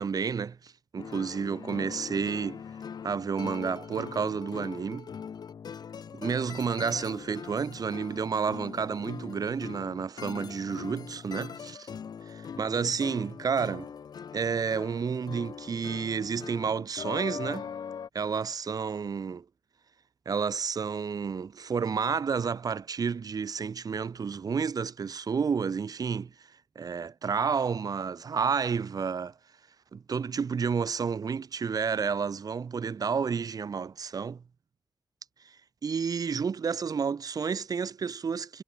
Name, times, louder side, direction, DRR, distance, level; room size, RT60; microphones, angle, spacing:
voice 1, 0.0-2.6 3.0-5.1 6.1-11.9 12.3-13.9 14.3-17.7 18.1-19.5 20.3-26.5 26.8-29.3 29.9-34.4 35.4-35.6 35.8-38.6, right 6 dB, 65° right, 1.7 m, -30 dB
sound 1, 1.0-18.1, left 7 dB, 70° left, 1.1 m, -41 dB
cardioid pair, 80°, 7 cm